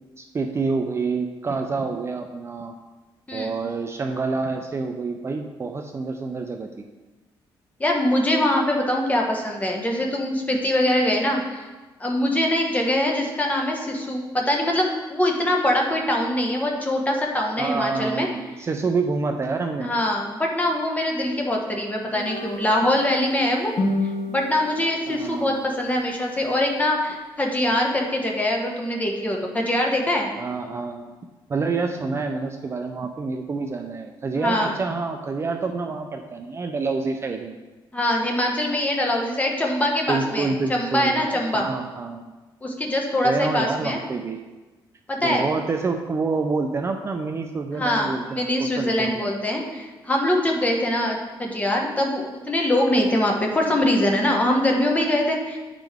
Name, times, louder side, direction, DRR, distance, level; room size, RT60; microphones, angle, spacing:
voice 1, 0.2-2.7 3.3-6.8 17.6-19.9 25.1-25.6 30.4-31.2 31.5-37.6 40.1-41.3 41.5-42.3 43.2-44.4 45.2-49.3, right 4 dB, 30° right, 4 dB, 0.4 m, -27 dB
voice 2, 7.8-11.7 12.0-18.3 19.8-23.7 24.3-30.3 34.3-34.8 37.9-41.7 42.6-44.0 45.1-45.5 47.7-55.6, left 1 dB, 15° left, 0 dB, 1.1 m, -23 dB
sound 1, 22.1-25.5, left 2 dB, 55° left, 1.5 m, -30 dB
10.0 x 3.7 x 3.5 m, 1.2 s
cardioid pair, 120°, 9 cm